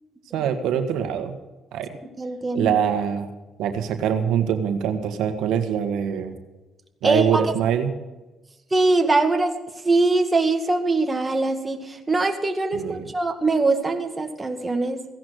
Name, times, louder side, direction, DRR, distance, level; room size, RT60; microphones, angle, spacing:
voice 1, 0.3-1.4 1.7-1.9 2.5-3.3 3.6-6.3 7.0-7.9 12.7-13.0, right 8 dB, 85° right, 7 dB, 1.6 m, -24 dB
voice 2, 2.0-2.7 7.0-7.4 8.7-9.6 9.8-15.1, right 3 dB, 20° right, 5 dB, 2.1 m, -22 dB
16.5 x 10.5 x 6.4 m, 1.1 s
cardioid pair, 90°, 0 cm